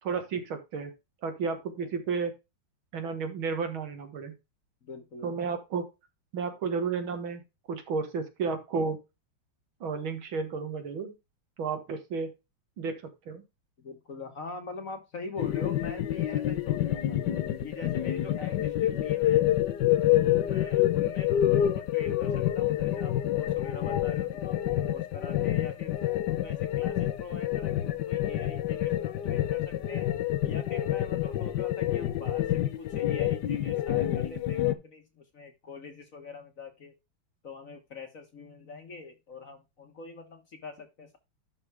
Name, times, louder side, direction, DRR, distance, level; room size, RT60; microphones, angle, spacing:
voice 1, 0.0-0.9 1.2-2.3 2.9-4.3 5.2-5.9 6.3-7.4 7.7-9.0 9.8-11.1 11.6-12.3 12.8-13.4, right 5 dB, 75° right, 6 dB, 2.4 m, -32 dB
voice 2, 4.8-5.3 13.8-17.2 17.6-19.5 20.1-25.9 26.2-30.1 30.4-36.9 37.4-41.2, left 3 dB, 45° left, 6 dB, 1.5 m, -44 dB
sound 1, 15.4-34.7, left 12 dB, 65° left, 1.3 m, -27 dB
11.5 x 3.9 x 4.7 m, 0.24 s
omnidirectional pair, 2.3 m